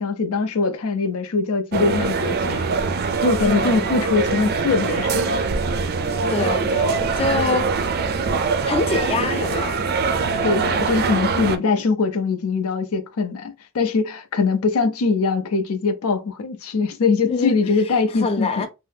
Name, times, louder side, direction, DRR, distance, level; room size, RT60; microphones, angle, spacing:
voice 1, 0.0-2.6 3.2-5.4 10.4-18.7, left 4 dB, 85° left, 0.5 m, -22 dB
sound 1, 1.7-11.6, right 4 dB, 45° right, 0.4 m, -23 dB
voice 2, 3.4-4.0 6.3-7.7 8.6-9.7 17.2-17.6 17.8-18.7, left 4 dB, 25° left, 0.3 m, -25 dB
2.7 x 2.1 x 3.3 m
head